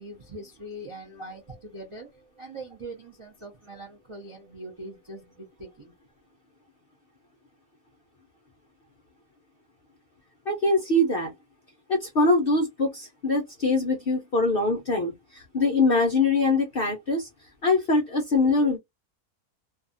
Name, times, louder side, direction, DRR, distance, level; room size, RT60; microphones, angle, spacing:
voice 1, 0.0-5.9 18.5-18.8, right 1 dB, 50° right, 0.3 m, -42 dB
voice 2, 10.5-11.3 11.9-17.3 17.6-18.8, left 2 dB, 65° left, 0.5 m, -23 dB
2.6 x 2.3 x 2.5 m
omnidirectional pair, 1.6 m